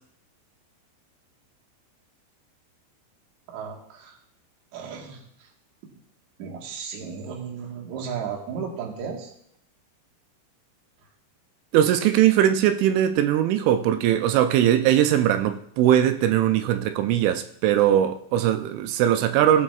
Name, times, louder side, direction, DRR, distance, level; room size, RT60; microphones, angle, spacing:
voice 1, 3.5-4.2 4.7-5.5 6.4-9.3, right 6 dB, 55° right, 2.2 m, -34 dB
voice 2, 11.7-19.6, right 11 dB, 90° right, 3.1 m, -20 dB
20.0 x 7.3 x 2.4 m
omnidirectional pair, 5.4 m